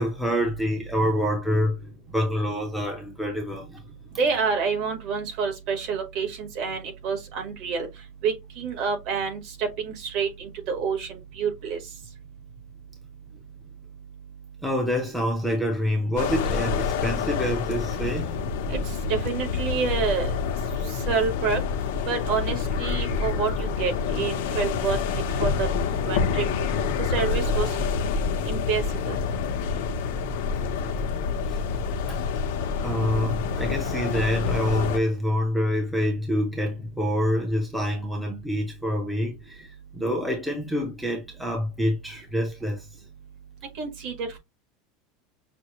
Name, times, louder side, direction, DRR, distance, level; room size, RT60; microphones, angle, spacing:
voice 1, 0.0-3.8 14.6-18.4 31.5-31.6 31.9-32.3 32.8-42.9, equal, ahead, 0.7 m, -27 dB
voice 2, 4.2-7.9 8.2-9.4 9.8-11.8 18.7-18.8 19.1-20.3 21.1-21.6 22.1-25.0 25.4-25.7 26.1-26.4 27.1-27.7 28.5-29.1 43.8-44.4, right 5 dB, 45° right, 1.5 m, -28 dB
sound 1, 16.2-35.0, left 5 dB, 80° left, 0.9 m, -27 dB
6.0 x 2.2 x 3.0 m
supercardioid pair, 175°, 0 cm